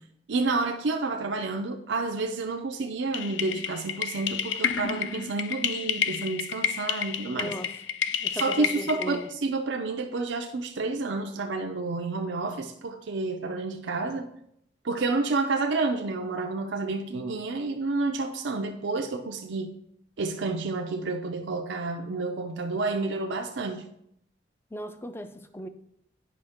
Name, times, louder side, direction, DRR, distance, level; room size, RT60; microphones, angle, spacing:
voice 1, 0.3-7.5 8.3-14.3 14.8-19.7 20.2-23.9, right 3 dB, 85° right, 4 dB, 0.5 m, -29 dB
sound 1, 3.1-9.3, left 8 dB, 90° left, 0.5 m, -30 dB
voice 2, 7.2-7.8 8.2-9.3 24.7-25.7, equal, 15° left, 9 dB, 0.4 m, -37 dB
9.5 x 5.2 x 3.5 m, 0.75 s
head